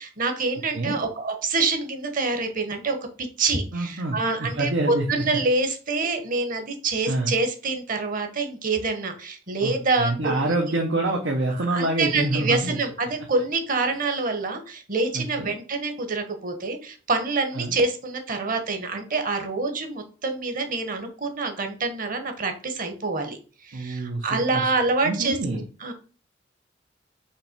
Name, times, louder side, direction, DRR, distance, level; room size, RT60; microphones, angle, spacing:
voice 1, 0.0-10.7 11.6-25.4 25.8-25.9, right 3 dB, 45° right, 6 dB, 1.1 m, -26 dB
voice 2, 3.7-5.2 7.1-7.4 9.6-9.7 10.0-12.8 15.1-15.5 17.5-17.7 23.7-24.6 25.0-25.6, right 2 dB, 90° right, 2 dB, 1.0 m, -26 dB
5.7 x 3.2 x 5.1 m, 0.39 s
head